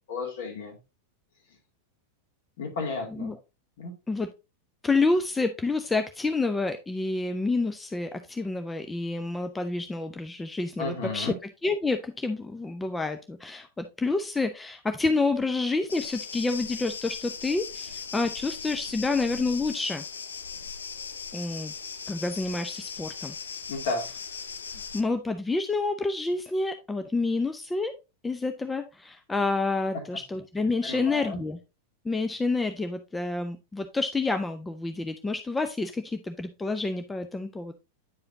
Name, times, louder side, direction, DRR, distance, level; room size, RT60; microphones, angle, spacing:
voice 1, 0.1-0.8 2.6-3.3 3.8-3.9 10.8-11.3 23.7-24.1 29.9-30.0 30.8-31.4, left 3 dB, 55° left, 1 dB, 2.3 m, -33 dB
voice 2, 4.8-11.3 11.6-20.0 21.3-21.7 22.1-23.3 24.9-27.9 28.2-31.6 32.0-37.7, left 3 dB, 10° left, 8 dB, 0.5 m, -28 dB
sound 1, 15.9-25.0, left 6 dB, 70° left, 0.5 m, -38 dB
9.4 x 4.9 x 2.6 m, 0.27 s
figure-of-eight pair, 90°, 0 cm